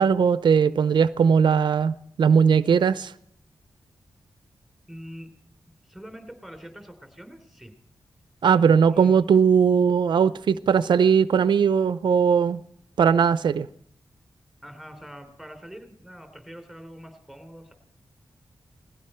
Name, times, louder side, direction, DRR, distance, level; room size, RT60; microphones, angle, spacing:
voice 1, 0.0-3.1 8.4-12.6 13.0-13.7, right 6 dB, 85° right, 0.5 m, -19 dB
voice 2, 4.9-5.3 5.9-7.7 8.9-9.2 14.6-17.7, equal, ahead, 3.5 m, -44 dB
19.5 x 15.5 x 4.4 m
wide cardioid pair, 100°, 8 cm